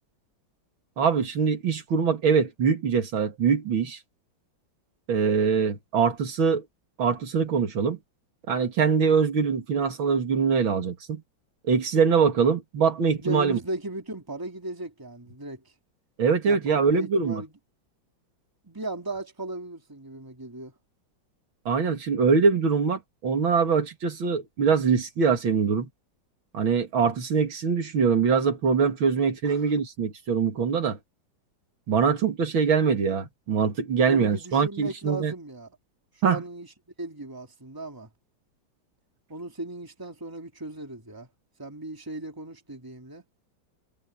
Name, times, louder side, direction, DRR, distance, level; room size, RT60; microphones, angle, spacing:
voice 1, 1.0-4.0 5.1-6.6 7.0-8.0 8.5-11.2 11.7-13.6 16.2-17.4 21.7-25.9 26.5-31.0 31.9-35.3 36.2-36.4, right 6 dB, 90° right, 3.1 m, -23 dB
voice 2, 13.2-15.7 16.4-17.5 18.6-20.7 29.4-29.7 34.0-35.8 36.1-36.7 37.0-38.1 39.3-41.3 41.6-43.2, right 2 dB, 10° right, 2.8 m, -36 dB
omnidirectional pair, 2.1 m